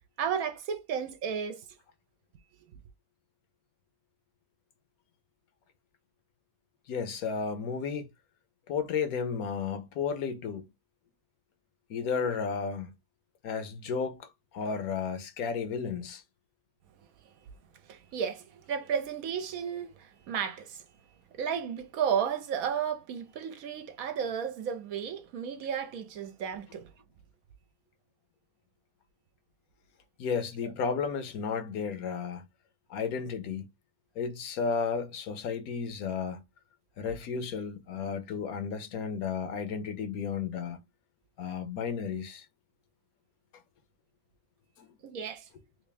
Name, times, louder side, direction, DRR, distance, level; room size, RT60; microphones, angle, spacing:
voice 1, 0.2-1.6 17.9-20.8 21.4-26.9 45.0-45.5, right 7 dB, 70° right, 1.0 m, -33 dB
voice 2, 6.9-8.1 8.7-10.6 11.9-12.9 13.4-16.2 30.2-32.5 32.9-33.7 34.2-36.4 37.0-40.8 41.4-42.5 44.8-44.9, left 6 dB, 70° left, 1.1 m, -33 dB
3.3 x 2.6 x 3.3 m
omnidirectional pair, 1.7 m